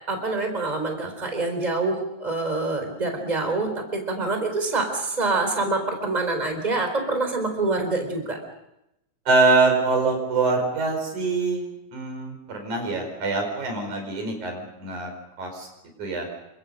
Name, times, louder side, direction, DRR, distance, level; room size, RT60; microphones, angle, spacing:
voice 1, 0.1-8.4, right 3 dB, 15° right, 5 dB, 4.0 m, -26 dB
voice 2, 9.3-15.1 15.4-15.7 16.0-16.3, right 3 dB, 85° right, 3 dB, 6.3 m, -24 dB
28.0 x 25.0 x 5.4 m, 0.87 s
omnidirectional pair, 3.4 m